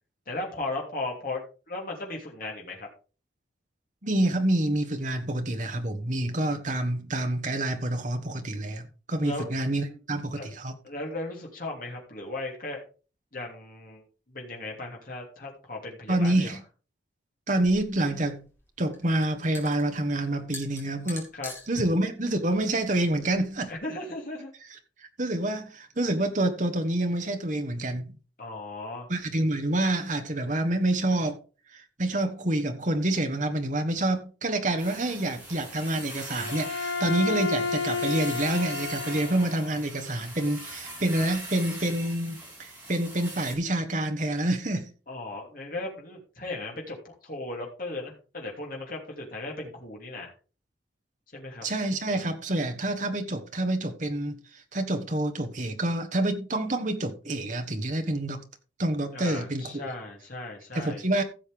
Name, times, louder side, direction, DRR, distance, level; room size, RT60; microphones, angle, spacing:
voice 1, 0.3-2.9 9.2-9.5 9.8-10.0 10.4-10.5 10.8-12.8 13.3-16.6 21.3-21.8 23.7-24.5 28.4-29.1 45.1-50.3 51.3-51.7 59.1-61.0, left 2 dB, 45° left, 2.9 m, -36 dB
voice 2, 4.0-10.7 16.1-16.6 17.5-18.4 18.8-21.3 21.7-23.7 25.2-28.1 29.1-31.4 31.7-44.9 51.6-58.4 58.8-59.9 60.7-61.2, right 1 dB, 40° right, 1.3 m, -27 dB
sound 1, 17.6-23.7, left 3 dB, 10° left, 2.6 m, -46 dB
sound 2, 34.8-43.5, right 1 dB, 10° right, 3.8 m, -41 dB
Bowed string instrument, 36.4-39.8, left 4 dB, 70° left, 1.2 m, -31 dB
15.5 x 6.5 x 3.6 m
head